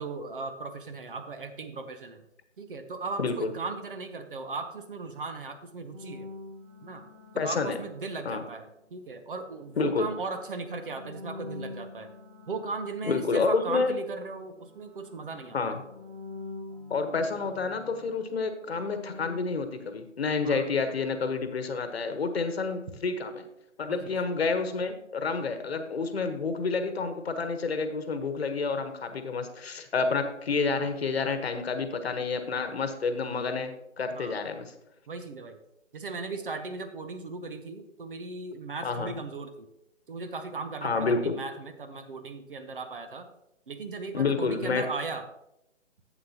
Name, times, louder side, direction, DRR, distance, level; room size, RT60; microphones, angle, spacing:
voice 1, 0.0-2.2 2.6-6.3 6.8-7.0 7.3-12.1 12.5-15.7 20.4-20.6 23.9-24.1 34.1-34.4 35.1-35.6 35.9-39.7 40.1-43.3 43.7-45.3, right 4 dB, 45° right, 8 dB, 0.9 m, -37 dB
voice 2, 3.2-3.5 7.4-7.8 8.2-8.4 9.8-10.1 13.1-13.9 15.5-15.8 16.9-23.4 23.8-34.7 38.8-39.1 40.8-41.3 44.1-44.8, left 4 dB, 55° left, 7 dB, 1.2 m, -29 dB
sound 1, 5.9-8.8 9.5-14.3 14.6-19.4, left 3 dB, 5° right, 1.2 m, -46 dB
11.5 x 8.1 x 2.9 m, 0.83 s
figure-of-eight pair, 155°, 38 cm